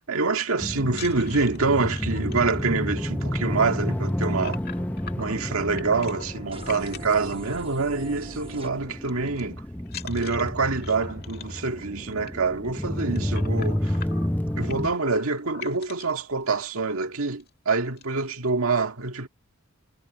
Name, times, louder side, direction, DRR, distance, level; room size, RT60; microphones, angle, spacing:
voice 1, 0.0-4.6 5.1-9.6 10.0-14.0 14.6-19.3, right 4 dB, 80° right, 1.9 m, -26 dB
sound 1, 0.6-14.9, left 1 dB, 10° left, 0.7 m, -30 dB
sound 2, 0.9-8.0 8.3-8.6 8.8-9.4 9.9-16.2 16.9-17.0 17.3-17.5 17.7-18.3, left 6 dB, 50° left, 2.3 m, -43 dB
sound 3, 6.5-8.7, right 2 dB, 25° right, 1.1 m, -43 dB
head